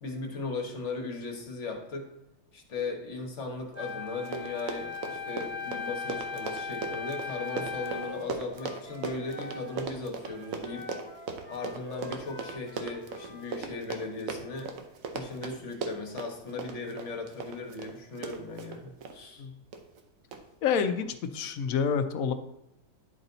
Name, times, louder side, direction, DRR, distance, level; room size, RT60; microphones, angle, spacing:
voice 1, 0.0-2.1 2.5-10.8 11.5-14.7 15.1-19.5, left 3 dB, 50° left, 2 dB, 1.5 m, -37 dB
Wind instrument woodwind instrument, 3.8-8.2, left 5 dB, 10° right, 1.2 m, -37 dB
Run, 3.9-4.0 4.2-19.2 19.7-20.0 20.3-20.4, right 5 dB, 65° right, 1.1 m, -38 dB
Wind instrument woodwind instrument 2, 6.8-9.9 10.2-13.6, left 3 dB, 15° left, 2.1 m, -46 dB
voice 2, 20.6-22.3, left 6 dB, 70° left, 9 dB, 1.0 m, -28 dB
10.5 x 4.1 x 3.9 m, 0.87 s
omnidirectional pair, 1.6 m